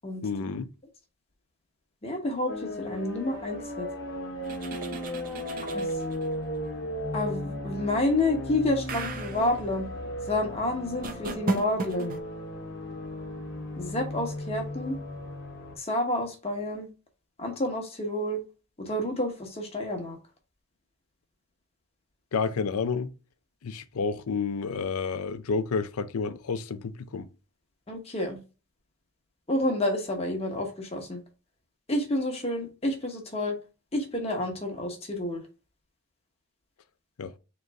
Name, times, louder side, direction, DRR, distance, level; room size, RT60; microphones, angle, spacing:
voice 1, 0.2-0.7 22.3-23.1 23.6-27.3 37.2-37.3, left 5 dB, 80° left, 0.5 m, -30 dB
voice 2, 2.0-3.9 5.7-5.9 7.1-9.9 10.3-12.2 13.8-15.0 15.8-16.9 17.4-18.4 18.8-20.2 27.9-28.4 29.5-31.2 31.9-33.5 33.9-35.4, left 1 dB, 25° left, 1.0 m, -29 dB
sound 1, 2.5-15.8, left 1 dB, 55° left, 0.8 m, -36 dB
sound 2, 4.4-6.3 8.9-9.5 11.0-12.2, right 3 dB, 40° right, 0.6 m, -35 dB
3.9 x 3.1 x 3.4 m
head